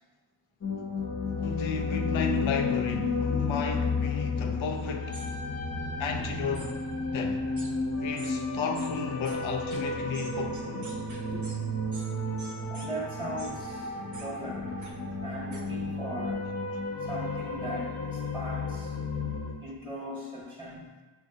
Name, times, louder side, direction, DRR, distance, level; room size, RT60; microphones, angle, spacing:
sound 1, 0.6-19.5, left 3 dB, 35° left, 0.5 m, -32 dB
voice 1, 1.4-5.2 6.0-6.8 7.0-7.5 8.0-10.9, left 5 dB, 85° left, 0.5 m, -33 dB
sound 2, 5.1-5.3 6.5-6.7 7.6-7.7 8.2-8.3 8.7-8.9 9.3-9.4 9.7-9.8 10.1-11.6 11.9-12.1 12.4-12.9 13.4-13.5 14.1-14.3 14.8-14.9 15.5-15.6, right 2 dB, 40° right, 0.7 m, -46 dB
voice 2, 12.6-13.9 14.2-14.7 15.2-16.5 17.0-19.0 19.5-20.9, right 1 dB, 10° right, 1.0 m, -39 dB
6.0 x 2.4 x 2.5 m
wide cardioid pair, 115°, 46 cm